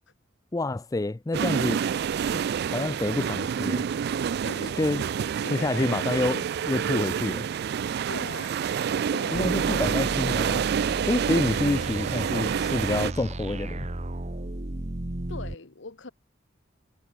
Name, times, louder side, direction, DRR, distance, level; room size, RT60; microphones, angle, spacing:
voice 1, 0.5-1.8 2.7-3.8 4.8-5.0 5.5-7.5 9.3-10.7 11.1-13.9, left 2 dB, 15° left, 0.4 m, -28 dB
sound 1, 1.3-13.1, right 7 dB, 55° right, 0.3 m, -28 dB
voice 2, 4.4-4.8 5.4-5.9 8.1-8.6 9.1-9.8 15.3-16.1, left 3 dB, 65° left, 1.3 m, -40 dB
sound 2, 9.3-15.5, right 1 dB, 35° right, 1.2 m, -34 dB
head